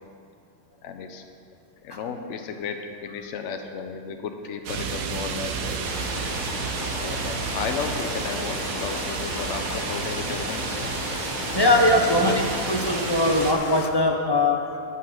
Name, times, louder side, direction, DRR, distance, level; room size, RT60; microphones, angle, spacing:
voice 1, 0.8-1.2 1.8-2.8 3.0-5.8 6.9-10.9 11.7-12.5, left 6 dB, 65° left, 5 dB, 0.9 m, -34 dB
sound 1, 4.7-13.5, right 5 dB, 75° right, 1.2 m, -31 dB
Rain, 5.9-13.9, left 6 dB, 90° left, 0.4 m, -35 dB
voice 2, 11.5-14.6, left 1 dB, 30° left, 1 dB, 0.4 m, -21 dB
8.4 x 5.5 x 7.6 m, 2.5 s
omnidirectional pair, 1.5 m